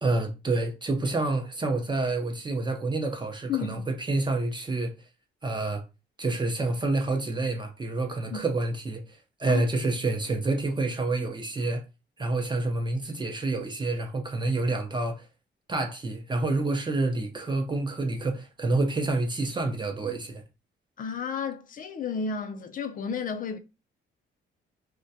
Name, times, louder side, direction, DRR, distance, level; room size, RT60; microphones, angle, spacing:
voice 1, 0.0-4.9 5.4-5.8 6.2-11.8 12.2-15.3 15.7-20.4, right 2 dB, 25° right, 0.5 m, -28 dB
voice 2, 3.5-3.9 8.3-8.4 9.5-9.6 21.0-23.6, left 6 dB, 45° left, 0.5 m, -32 dB
2.2 x 2.2 x 2.6 m
cardioid pair, 90°, 20 cm